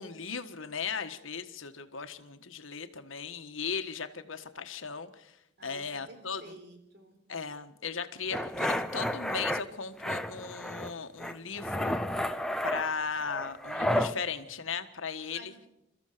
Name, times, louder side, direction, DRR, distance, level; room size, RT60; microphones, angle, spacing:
voice 1, 0.0-5.3 5.6-6.5 7.3-12.3 12.6-15.5, left 5 dB, 75° left, 9 dB, 1.5 m, -37 dB
voice 2, 5.6-7.2 15.3-15.7, right 2 dB, 55° right, 5 dB, 4.1 m, -51 dB
sound 1, 8.3-9.6 10.0-10.9 11.2-14.1, left 1 dB, 5° left, 0.8 m, -31 dB
28.0 x 14.0 x 6.8 m, 0.84 s
head